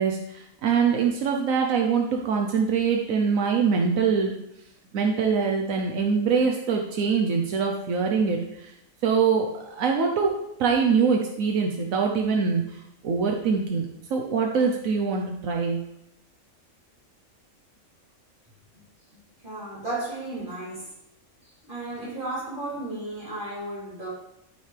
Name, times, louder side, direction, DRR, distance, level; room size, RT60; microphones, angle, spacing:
voice 1, 0.0-4.3 4.9-8.7 9.0-10.3 10.6-15.8, right 5 dB, 85° right, 1.2 m, -24 dB
voice 2, 19.4-20.9 21.7-24.1, right 2 dB, 40° right, 3.8 m, -34 dB
12.5 x 5.6 x 3.3 m
omnidirectional pair, 1.4 m